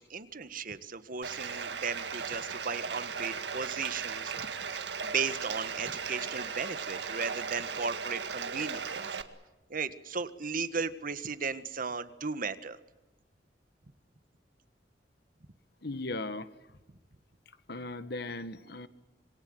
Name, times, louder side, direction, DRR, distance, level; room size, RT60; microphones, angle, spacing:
voice 1, 0.0-4.5 4.7-9.0 9.7-12.8, right 5 dB, 50° right, 13 dB, 1.5 m, -36 dB
Bathtub (filling or washing), 1.2-9.2, right 5 dB, 70° right, 2.0 m, -37 dB
voice 2, 15.8-16.5 17.7-18.9, left 2 dB, 65° left, 13 dB, 1.6 m, -37 dB
27.0 x 23.0 x 7.9 m, 1.1 s
head